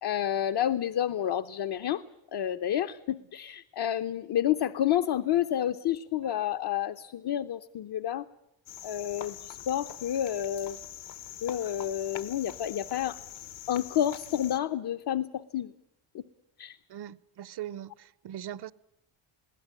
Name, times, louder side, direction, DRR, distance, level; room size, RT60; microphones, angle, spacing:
voice 1, 0.0-2.0 2.3-8.3 8.8-10.8 11.4-13.2 13.7-15.7 16.1-16.2 16.6-16.8, left 11 dB, 55° left, 0.9 m, -29 dB
Cricket, 8.7-14.6, left 10 dB, 70° left, 1.4 m, -44 dB
voice 2, 16.9-18.7, right 11 dB, 55° right, 0.8 m, -40 dB
22.0 x 16.5 x 10.0 m
cardioid pair, 130°, 47 cm